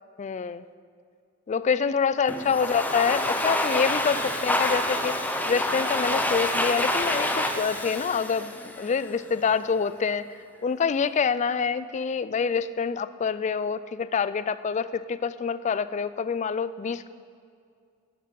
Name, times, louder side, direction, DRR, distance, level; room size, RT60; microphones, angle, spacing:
voice 1, 0.2-0.6 1.5-5.2 5.5-10.3 10.6-17.1, left 6 dB, 35° left, 15 dB, 0.3 m, -26 dB
Domestic sounds home sounds, 2.3-9.2, left 1 dB, 10° left, 0.7 m, -27 dB
10.0 x 7.4 x 7.5 m, 2.3 s
head